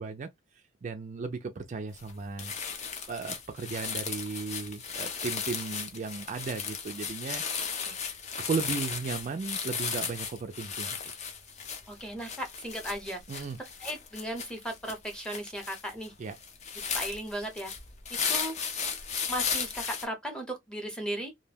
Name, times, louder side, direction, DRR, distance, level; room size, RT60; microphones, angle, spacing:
voice 1, 0.0-2.5 3.1-7.4 8.4-11.1 13.3-13.6 16.2-16.4, right 4 dB, 40° right, 0.3 m, -36 dB
sound 1, 2.0-2.1 2.4-20.1, left 6 dB, 35° left, 0.5 m, -35 dB
voice 2, 11.9-13.4 13.8-16.1 16.9-17.7 18.3-18.5 19.3-21.3, right 1 dB, 5° left, 0.7 m, -36 dB
2.2 x 2.1 x 3.2 m
head